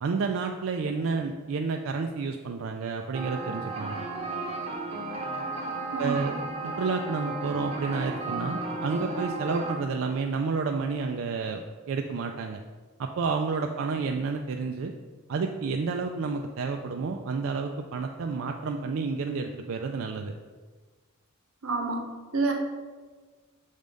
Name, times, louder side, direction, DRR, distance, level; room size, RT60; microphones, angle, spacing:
voice 1, 0.0-4.0 6.0-6.3 6.6-12.6 13.0-14.9 15.3-20.3, right 4 dB, 65° right, 3 dB, 0.4 m, -30 dB
sound 1, 3.1-9.8, right 2 dB, 30° right, 0.8 m, -34 dB
voice 2, 5.9-6.4 21.6-22.0 22.3-22.5, right 3 dB, 90° right, 2 dB, 1.0 m, -28 dB
6.4 x 3.5 x 5.2 m, 1.4 s
head